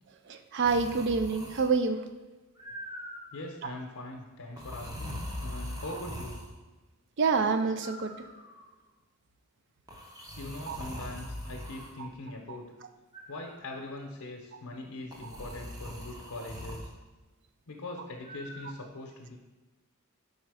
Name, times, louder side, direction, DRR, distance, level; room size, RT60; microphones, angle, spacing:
voice 1, 0.3-2.0 3.6-3.7 7.2-8.1 10.7-10.8 12.0-12.1, right 4 dB, 55° right, 8 dB, 0.4 m, -27 dB
sound 1, 0.6-1.9 2.6-3.5 4.6-6.5 7.8-8.7 9.9-11.9 13.1-13.9 15.1-16.9 18.2-18.7, equal, 15° right, 0.7 m, -42 dB
voice 2, 3.3-6.4 10.4-12.7 13.3-16.9 17.7-19.4, left 2 dB, 90° left, 0 dB, 0.7 m, -42 dB
4.8 x 4.2 x 4.8 m, 1.2 s
head